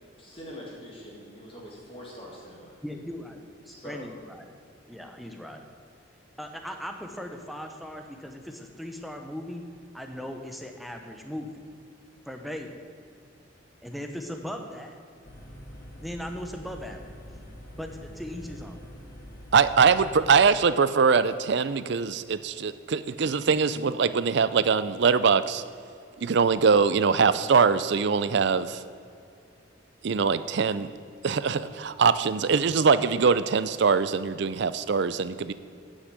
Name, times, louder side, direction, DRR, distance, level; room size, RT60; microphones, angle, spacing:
voice 1, 0.2-2.8 3.7-4.1, equal, 30° left, -3 dB, 1.9 m, -43 dB
voice 2, 2.8-4.5 4.9-5.6 6.4-9.6 9.9-11.7 12.3-12.8 13.8-15.0 16.0-17.1 17.7-18.8, equal, ahead, 4 dB, 0.9 m, -38 dB
sound 1, 15.2-20.3, equal, 90° left, 2.9 m, -45 dB
voice 3, 19.5-25.6 26.2-28.8 30.0-30.9 31.2-35.5, right 5 dB, 60° right, 14 dB, 0.5 m, -22 dB
9.6 x 6.4 x 8.1 m, 2.4 s
head